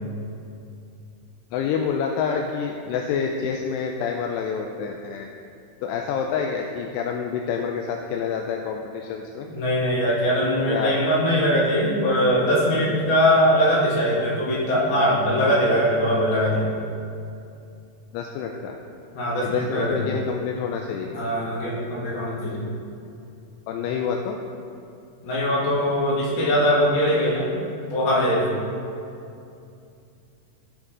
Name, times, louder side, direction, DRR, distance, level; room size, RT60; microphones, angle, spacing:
voice 1, 1.5-5.3 5.8-9.5 10.7-10.9 18.1-18.8 19.4-21.1 23.7-24.4, left 6 dB, 85° left, 2 dB, 2.7 m, -27 dB
voice 2, 9.5-16.6 19.1-20.0 21.1-22.6 25.2-27.5 27.9-28.5, equal, 65° left, -5 dB, 3.9 m, -21 dB
17.0 x 6.1 x 3.9 m, 2.6 s
omnidirectional pair, 4.8 m